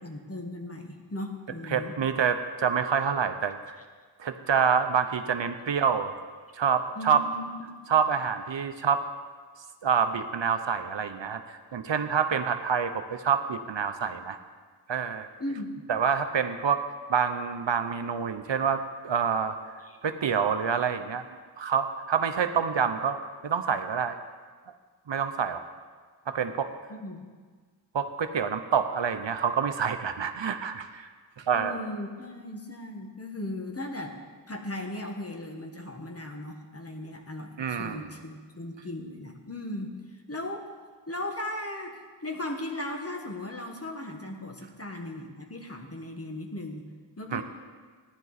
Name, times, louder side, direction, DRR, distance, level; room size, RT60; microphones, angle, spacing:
voice 1, 0.0-1.9 6.9-7.7 15.4-15.8 19.9-20.0 26.9-27.2 31.5-34.2 34.5-40.7 41.1-46.9 47.2-47.4, left 1 dB, 30° left, 3 dB, 1.5 m, -37 dB
voice 2, 1.7-3.8 4.2-6.1 6.5-7.2 7.9-9.0 9.8-11.4 11.7-14.4 14.9-15.3 15.9-16.8 17.1-19.6 20.0-21.2 21.6-23.2 23.4-24.2 25.1-25.6 26.3-26.7 27.9-31.1 31.5-31.8 37.6-38.1 47.3-47.4, right 7 dB, 70° right, 8 dB, 0.8 m, -27 dB
15.0 x 10.5 x 4.1 m, 1.5 s
wide cardioid pair, 60°, 45 cm